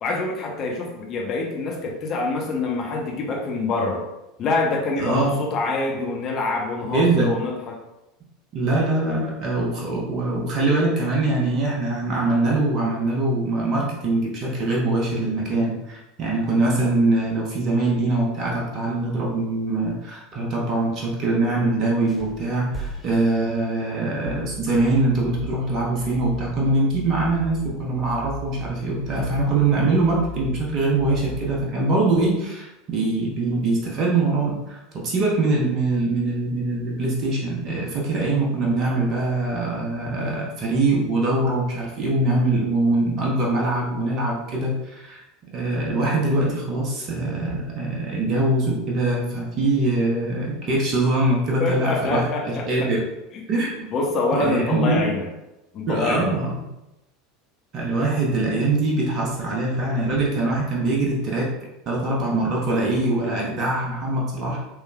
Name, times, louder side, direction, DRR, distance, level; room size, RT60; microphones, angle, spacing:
voice 1, 0.0-4.0 4.4-7.8 51.6-52.9 53.3-53.4 53.9-55.3 55.7-56.3, left 3 dB, 40° left, 0 dB, 0.8 m, -25 dB
voice 2, 5.0-5.3 6.9-7.3 8.5-45.2 45.5-53.0 53.5-53.9 54.3-55.1 55.9-56.7 57.7-61.5 61.9-64.6, right 2 dB, 40° right, -2 dB, 0.9 m, -23 dB
sound 1, 22.1-24.3, right 3 dB, 5° left, 0.7 m, -39 dB
sound 2, 24.2-31.6, right 2 dB, 80° right, 0.4 m, -38 dB
4.6 x 3.1 x 2.2 m, 0.94 s
figure-of-eight pair, 75°, 0 cm